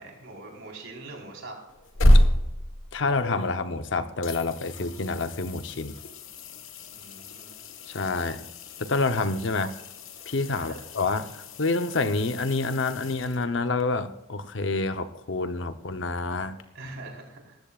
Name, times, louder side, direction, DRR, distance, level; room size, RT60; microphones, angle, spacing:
voice 1, 0.0-1.5 6.9-7.5 9.5-9.7 10.6-10.8 16.7-17.6, right 2 dB, 80° right, -1 dB, 4.2 m, -43 dB
sound 1, 1.7-3.9 4.2-13.8 16.6-16.7, equal, 85° left, 1.3 m, -28 dB
voice 2, 2.9-6.0 7.9-8.4 8.8-9.7 10.3-16.6, left 3 dB, 60° left, 10 dB, 0.8 m, -28 dB
19.5 x 14.0 x 2.4 m, 0.93 s
head